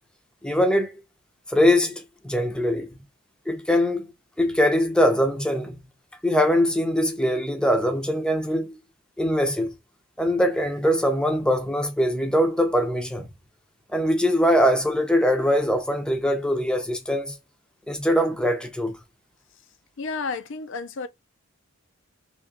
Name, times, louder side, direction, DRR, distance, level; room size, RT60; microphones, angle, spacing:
voice 1, 0.4-0.9 1.5-2.9 3.5-4.1 4.4-5.8 6.2-8.8 9.2-9.7 10.2-13.3 13.9-17.3 17.9-18.9, equal, 5° left, 0.7 m, -22 dB
voice 2, 20.0-21.1, left 4 dB, 55° left, 0.5 m, -31 dB
3.5 x 3.1 x 2.9 m
head